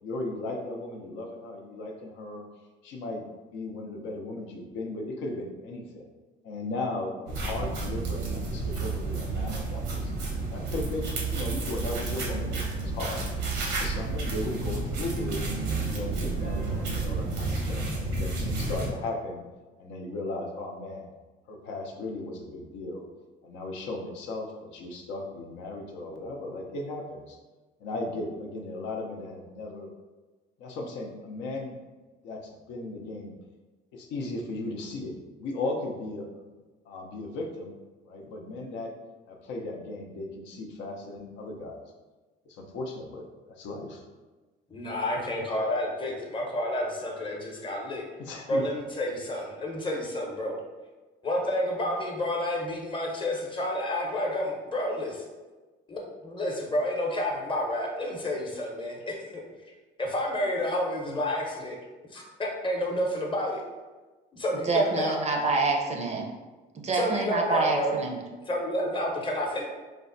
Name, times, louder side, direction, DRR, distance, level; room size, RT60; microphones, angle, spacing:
voice 1, 0.0-2.4 2.8-3.2 3.5-6.1 6.4-10.1 10.5-13.2 13.8-15.4 15.9-19.4 19.8-21.1 21.5-23.0 23.4-27.4 27.8-29.9 30.6-31.8 32.2-33.3 33.9-35.1 35.4-36.4 36.9-37.7 38.0-38.9 39.3-41.8 42.5-44.0 48.2-48.6, left 2 dB, 75° left, 1 dB, 0.5 m, -36 dB
sound 1, 7.3-18.9, right 3 dB, 85° right, 0.7 m, -31 dB
voice 2, 44.7-48.0 48.5-50.6 51.2-55.2 55.9-59.4 60.0-61.8 62.1-63.6 64.3-65.2 66.9-67.9 68.5-69.7, left 1 dB, 25° left, -1 dB, 0.7 m, -30 dB
voice 3, 64.7-66.2 66.8-68.1, right 3 dB, 35° right, 2 dB, 0.5 m, -26 dB
3.3 x 2.1 x 2.5 m, 1.2 s
supercardioid pair, 85°, 19 cm